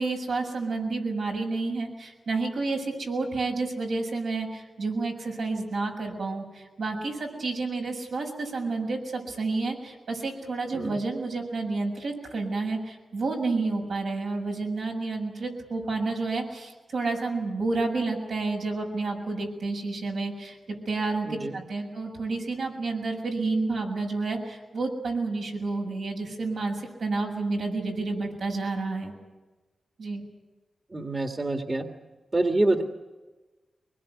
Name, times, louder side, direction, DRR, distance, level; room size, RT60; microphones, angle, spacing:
voice 1, 0.0-20.6 20.9-29.1 30.0-30.2, right 3 dB, 80° right, 0 dB, 7.1 m, -30 dB
voice 2, 30.9-31.9 32.3-32.8, right 2 dB, 30° right, 5 dB, 1.9 m, -26 dB
23.5 x 21.0 x 9.6 m, 1.2 s
wide cardioid pair, 95°, 0 cm